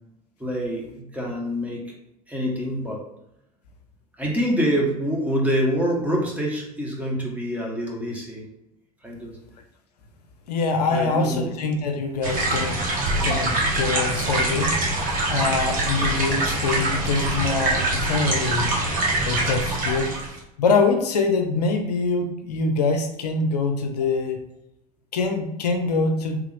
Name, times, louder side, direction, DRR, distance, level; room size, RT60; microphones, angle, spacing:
voice 1, 0.4-1.9 2.3-3.0 4.2-8.4 9.0-9.4 10.9-11.5, equal, 5° right, -3 dB, 1.1 m, -26 dB
voice 2, 10.5-12.8 13.2-14.7 15.3-18.7 19.2-20.1 20.6-24.4 25.1-26.4, left 4 dB, 80° left, 4 dB, 0.5 m, -24 dB
sound 1, 12.2-20.4, right 2 dB, 45° right, 1.2 m, -24 dB
3.4 x 2.3 x 3.3 m, 0.84 s
figure-of-eight pair, 70°, 20 cm